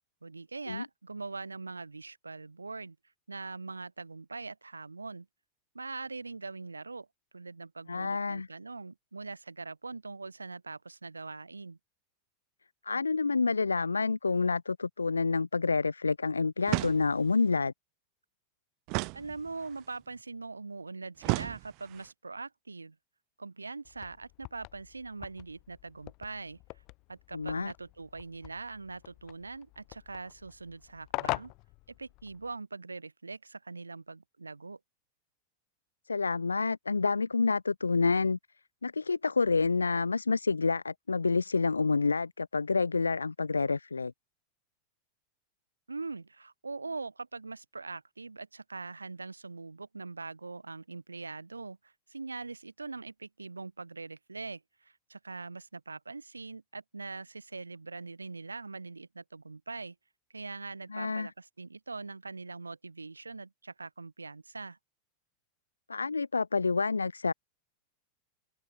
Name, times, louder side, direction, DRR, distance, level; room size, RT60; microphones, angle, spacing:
voice 1, 0.2-3.0 3.3-5.3 5.7-7.1 7.3-11.8 19.1-23.0 23.4-26.6 27.1-31.5 31.9-34.8 45.9-59.9 60.3-64.8, right 3 dB, 80° right, 3.3 m, -42 dB
voice 2, 7.9-8.5 12.8-17.7 27.3-27.7 36.1-38.4 38.8-44.1 60.9-61.3 65.9-67.3, left 4 dB, 75° left, 0.3 m, -28 dB
sound 1, 16.7-17.4 18.9-19.8 21.2-22.1, right 34 dB, 45° right, 2.4 m, -34 dB
sound 2, 23.8-32.6, left 25 dB, 40° left, 1.0 m, -43 dB
figure-of-eight pair, 90°, 0 cm